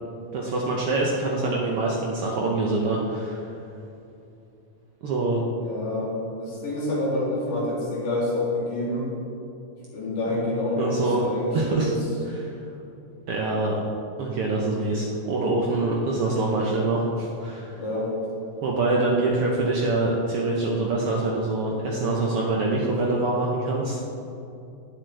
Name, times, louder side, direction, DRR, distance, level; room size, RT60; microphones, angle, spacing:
voice 1, 0.3-3.5 5.0-5.4 10.3-10.4 10.8-11.2 11.5-11.9 12.3-12.5 13.3-13.8 14.2-17.7 18.6-24.0, right 2 dB, 85° right, -2 dB, 1.2 m, -25 dB
voice 2, 5.6-9.1 9.9-11.9 17.7-18.1, left 1 dB, 75° left, -7 dB, 4.7 m, -27 dB
18.0 x 7.8 x 3.4 m, 2.7 s
omnidirectional pair, 3.9 m